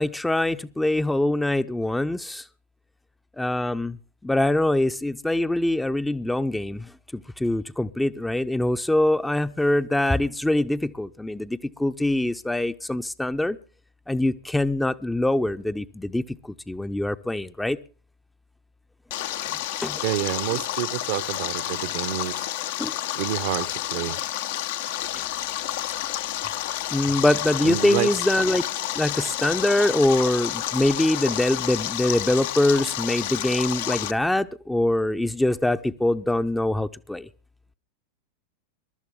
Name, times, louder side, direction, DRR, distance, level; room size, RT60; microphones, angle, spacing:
voice 1, 0.0-2.4 3.4-4.0 4.2-13.6 14.1-16.2 16.7-17.8 19.8-20.0 22.8-22.9 26.9-28.6 28.9-37.3, left 1 dB, 5° left, 0.6 m, -24 dB
Stream, 19.1-34.1, left 13 dB, 55° left, 0.7 m, -30 dB
voice 2, 20.0-22.5 23.1-24.2 27.6-28.1, right 14 dB, 50° right, 0.8 m, -28 dB
22.0 x 12.5 x 3.6 m
figure-of-eight pair, 90°, 0 cm